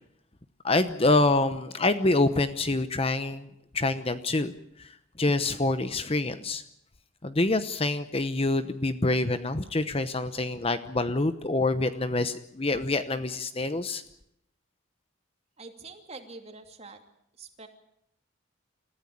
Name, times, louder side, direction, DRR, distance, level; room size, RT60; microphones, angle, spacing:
voice 1, 0.6-3.5 3.7-4.5 4.8-4.9 5.2-6.6 7.2-14.0, left 2 dB, 25° left, 11 dB, 0.9 m, -26 dB
voice 2, 15.6-17.0 17.4-17.7, right 3 dB, 30° right, 5 dB, 2.7 m, -45 dB
28.5 x 14.5 x 8.7 m, 0.76 s
head